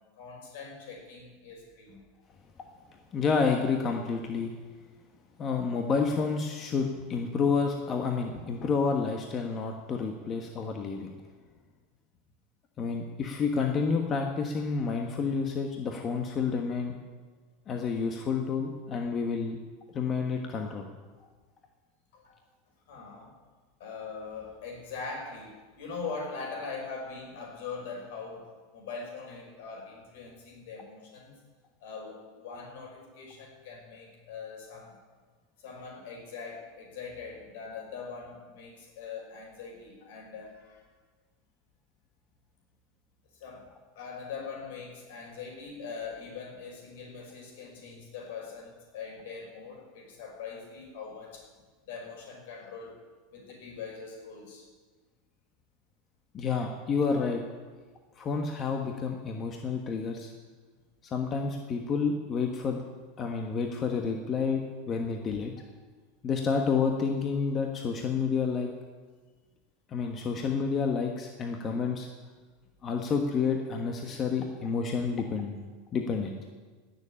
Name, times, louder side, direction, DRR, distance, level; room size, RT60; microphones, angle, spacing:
voice 1, 0.2-2.0 22.1-22.4 22.9-23.3 23.8-31.3 31.8-35.0 35.6-40.8 43.4-43.7 44.0-51.5 51.9-53.0 53.3-54.7, left 5 dB, 75° left, 0 dB, 5.3 m, -42 dB
voice 2, 3.1-4.5 5.4-11.1 12.8-17.0 17.7-19.6 19.9-20.9 56.3-57.4 58.2-60.3 61.0-62.8 63.2-64.6 64.9-65.5 66.2-68.7 69.9-72.1 72.8-75.6 75.9-76.4, left 5 dB, 30° left, 3 dB, 1.3 m, -29 dB
17.5 x 7.1 x 8.7 m, 1.4 s
supercardioid pair, 130°, 0 cm